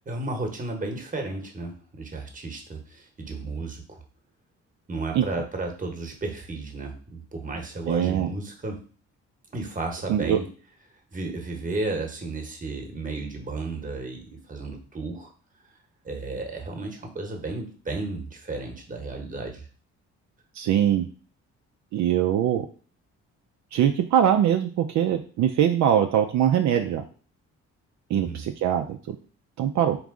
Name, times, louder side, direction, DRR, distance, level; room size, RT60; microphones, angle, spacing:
voice 1, 0.1-4.0 4.9-8.8 9.5-10.5 11.1-15.3 16.0-19.6 28.1-28.4, right 3 dB, 25° right, 3 dB, 1.0 m, -33 dB
voice 2, 7.9-8.3 10.1-10.4 20.6-21.1 21.9-22.7 23.7-27.0 28.1-29.2 29.6-30.0, right 10 dB, 65° right, 5 dB, 0.5 m, -22 dB
3.6 x 3.0 x 3.6 m, 0.40 s
cardioid pair, 90°, 30 cm